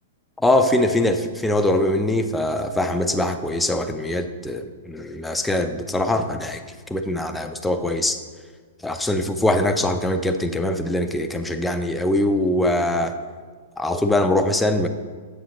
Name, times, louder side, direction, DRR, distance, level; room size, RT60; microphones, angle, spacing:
voice 1, 0.4-6.6 6.9-8.2 8.8-13.2 13.8-14.9, left 1 dB, 5° left, 6 dB, 0.5 m, -22 dB
7.3 x 7.2 x 3.0 m, 1.6 s
hypercardioid pair, 120°, 0 cm